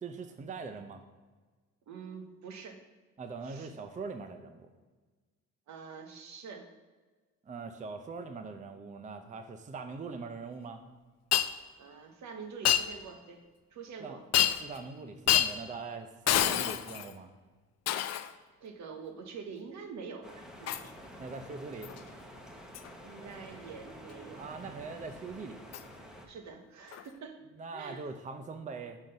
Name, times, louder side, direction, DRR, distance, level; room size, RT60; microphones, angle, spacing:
voice 1, 0.0-1.0 3.2-4.7 7.4-10.8 14.0-14.2 14.6-17.3 21.2-21.9 24.4-25.6 27.6-29.0, right 4 dB, 25° right, 8 dB, 0.5 m, -42 dB
voice 2, 1.9-2.8 3.4-3.7 5.7-6.7 11.8-13.4 13.7-14.5 16.3-16.6 18.6-20.8 23.0-24.6 26.3-27.4 27.7-28.1, right 5 dB, 65° right, 4 dB, 1.0 m, -46 dB
Shatter, 11.3-11.5 12.7-12.9 14.3-14.8 15.3-15.6 16.3-17.1 17.9-18.3 20.7-20.9 21.8-22.0 22.7-22.9 25.7-25.8 26.9-27.0, left 11 dB, 60° left, 0.4 m, -27 dB
sound 1, 20.2-26.3, equal, ahead, 0.9 m, -49 dB
6.3 x 3.8 x 5.2 m, 1.3 s
cardioid pair, 90°, 30 cm